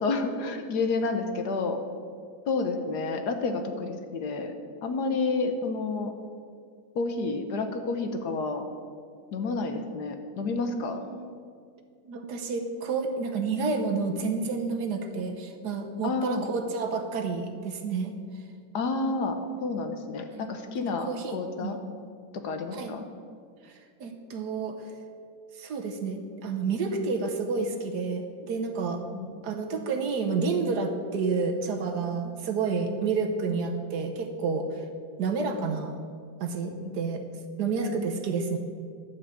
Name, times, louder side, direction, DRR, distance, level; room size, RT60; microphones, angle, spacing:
voice 1, 0.0-1.8 2.5-4.5 4.8-6.1 6.9-8.6 9.3-11.0 16.0-16.5 18.7-21.8 22.3-23.1 29.1-29.4 36.8-37.0, left 3 dB, 65° left, 6 dB, 1.3 m, -30 dB
voice 2, 10.9-11.3 12.0-18.1 20.3-20.4 21.0-21.8 22.7-22.9 23.6-24.8 25.5-29.0 29.4-34.8 35.2-36.0 36.4-37.2 37.6-38.6, right 4 dB, 60° right, 5 dB, 1.4 m, -30 dB
11.5 x 5.2 x 8.2 m, 2.2 s
omnidirectional pair, 2.1 m